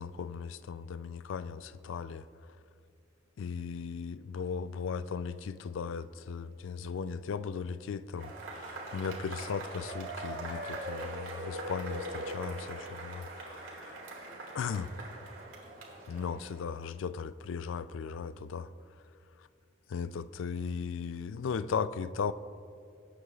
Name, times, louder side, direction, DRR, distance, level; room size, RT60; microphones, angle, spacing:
voice 1, 0.0-2.3 3.4-14.0 14.5-14.9 16.1-18.7 19.4-19.5 19.9-22.3, left 6 dB, 65° left, 0.4 m, -37 dB
Cheering / Applause / Crowd, 8.2-16.8, right 1 dB, 70° right, 2.0 m, -41 dB
19.0 x 8.1 x 2.3 m
head